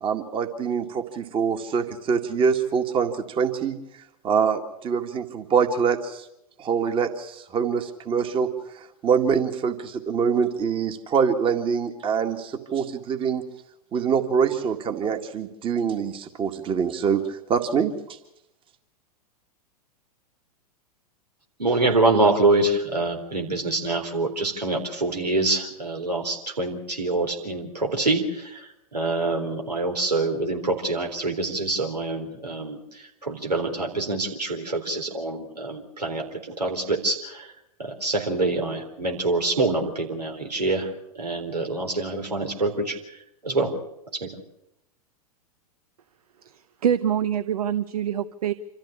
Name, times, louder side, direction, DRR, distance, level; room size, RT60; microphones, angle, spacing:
voice 1, 0.0-3.8 4.2-6.2 6.6-8.5 9.0-13.4 13.9-17.2 17.5-17.9, right 6 dB, 25° right, 6 dB, 1.9 m, -24 dB
voice 2, 21.6-37.5 37.8-40.9 41.2-43.0 43.4-43.8 44.1-44.4, right 2 dB, 85° right, 2 dB, 4.0 m, -25 dB
voice 3, 46.4-48.5, right 9 dB, 65° right, 13 dB, 0.8 m, -25 dB
26.5 x 14.0 x 8.6 m, 0.85 s
figure-of-eight pair, 100°, 20 cm